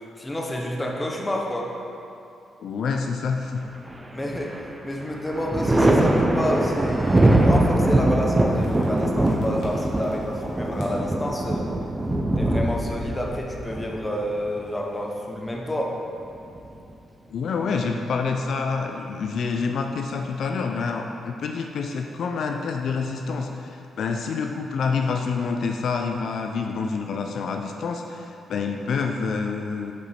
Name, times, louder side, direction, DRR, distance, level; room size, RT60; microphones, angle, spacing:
voice 1, 0.2-1.7 4.1-4.5 4.8-11.7 12.4-15.9, left 1 dB, 10° left, -1 dB, 0.7 m, -29 dB
voice 2, 2.6-3.6 17.3-29.9, left 5 dB, 60° left, 3 dB, 0.4 m, -27 dB
Thunder, 3.9-4.6 5.0-14.6 16.1-16.9, right 1 dB, 15° right, 0.4 m, -22 dB
sound 1, 6.2-6.6 7.2-7.3 7.6-7.7 8.6-9.0 9.3-10.4 10.7-11.3 11.9-13.9, left 1 dB, 80° left, 1.4 m, -37 dB
6.8 x 5.1 x 4.3 m, 2.7 s
wide cardioid pair, 155°, 0 cm